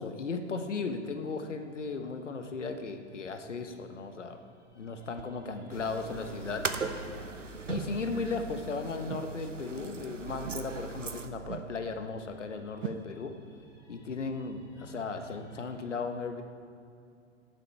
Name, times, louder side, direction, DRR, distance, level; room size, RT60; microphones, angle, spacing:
voice 1, 0.0-4.4 4.8-6.7 7.7-13.3 13.9-16.4, left 4 dB, 75° left, 7 dB, 1.3 m, -36 dB
sound 1, 1.1-10.1 11.0-15.9, equal, 10° left, 3.8 m, -58 dB
sound 2, 4.3-4.4 5.2-5.3 6.1-6.2 6.8-7.0 8.0-8.3 9.0-9.4 10.4-10.7 11.5-11.8 12.8-13.1, right 11 dB, 45° right, 0.6 m, -42 dB
sound 3, 5.7-11.3, right 4 dB, 90° right, 1.0 m, -38 dB
14.0 x 11.5 x 4.5 m, 2.5 s
figure-of-eight pair, 105°, 36 cm